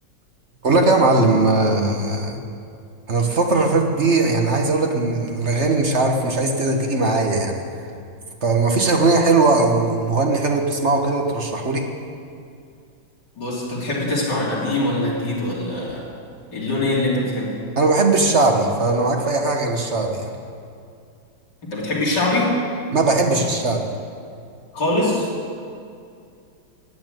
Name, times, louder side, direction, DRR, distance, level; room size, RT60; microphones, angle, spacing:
voice 1, 0.6-2.4 3.1-7.8 8.4-11.9 17.8-20.3 22.9-23.8, right 3 dB, 40° right, 2 dB, 1.3 m, -19 dB
voice 2, 13.4-16.1 16.5-17.6 21.6-22.6 24.7-25.3, left 1 dB, 55° left, -5 dB, 4.0 m, -23 dB
13.5 x 8.8 x 9.2 m, 2.4 s
omnidirectional pair, 2.2 m